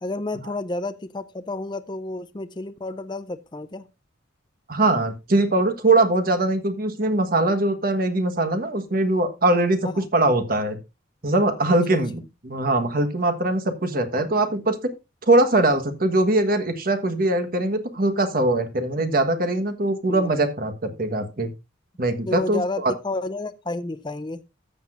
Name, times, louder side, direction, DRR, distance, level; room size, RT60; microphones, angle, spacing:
voice 1, 0.0-3.9 10.0-10.1 11.7-12.0 20.1-20.3 22.3-24.4, left 2 dB, 25° left, 0.5 m, -31 dB
voice 2, 4.7-10.8 11.2-14.9 15.3-21.5 22.0-22.9, right 2 dB, 50° right, 1.4 m, -22 dB
13.5 x 7.8 x 2.5 m
head